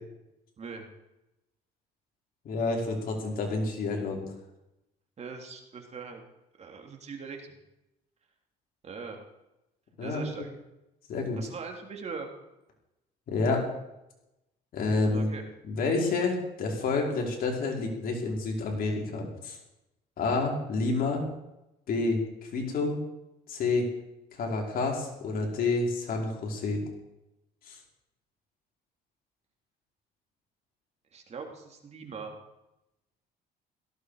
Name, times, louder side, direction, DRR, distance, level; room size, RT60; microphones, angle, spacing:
voice 1, 0.6-0.9 5.2-6.2 6.6-7.5 8.8-9.2 10.0-10.5 11.4-12.3 15.0-15.4 31.1-32.3, right 5 dB, 40° right, 2 dB, 3.2 m, -41 dB
voice 2, 2.4-4.3 10.0-10.4 11.1-11.4 13.3-13.6 14.7-15.4 15.6-19.6 20.2-21.2 21.9-22.2 22.5-23.0 23.5-23.9 24.3-26.8 27.7-27.8, left 3 dB, 60° left, 0 dB, 4.9 m, -29 dB
17.5 x 16.0 x 5.0 m, 0.92 s
cardioid pair, 110°, 17 cm